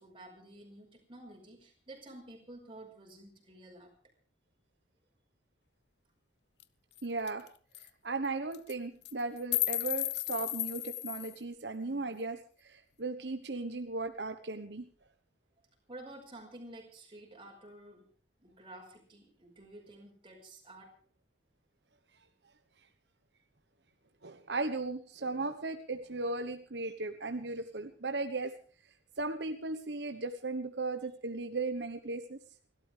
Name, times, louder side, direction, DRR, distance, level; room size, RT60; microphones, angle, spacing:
voice 1, 0.0-3.9 11.8-12.2 15.6-18.1 18.4-20.9, right 1 dB, 30° right, 1 dB, 5.3 m, -51 dB
sound 1, 6.6-6.7 7.0-7.1 7.3-7.5 7.7-7.9 8.5-8.7 9.1-11.4, left 16 dB, 65° left, 0.9 m, -34 dB
voice 2, 7.0-7.5 8.0-14.9 24.2-28.5 29.2-32.4, right 3 dB, 75° right, 7 dB, 1.2 m, -36 dB
29.5 x 12.5 x 3.5 m, 0.42 s
head